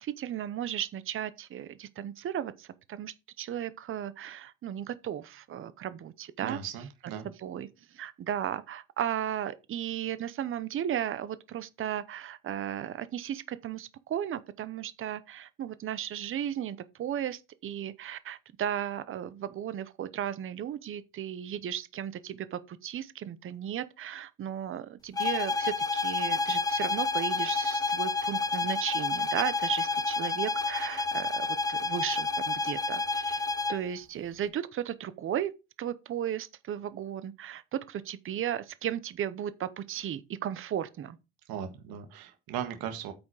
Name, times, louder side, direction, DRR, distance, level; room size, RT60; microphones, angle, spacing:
voice 1, 0.0-6.6 7.2-33.4 33.7-35.5 35.8-41.2, right 10 dB, 35° right, 0.8 m, -35 dB
voice 2, 6.4-7.3 41.5-43.1, right 9 dB, 75° right, 1.8 m, -37 dB
sound 1, 25.2-33.9, left 3 dB, 10° left, 0.4 m, -29 dB
8.6 x 6.2 x 4.8 m
cardioid pair, 165°, 36 cm